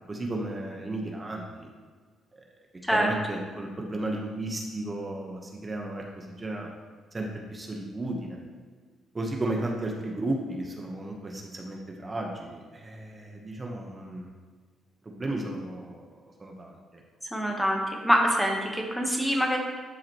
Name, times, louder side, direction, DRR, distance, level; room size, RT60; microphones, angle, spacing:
voice 1, 0.0-1.7 2.9-6.7 7.1-8.4 9.1-14.3 15.0-17.0, right 2 dB, 25° right, 1 dB, 1.1 m, -34 dB
voice 2, 17.3-19.6, equal, ahead, 1 dB, 1.2 m, -25 dB
12.0 x 4.9 x 3.1 m, 1.5 s
cardioid pair, 90°, 0 cm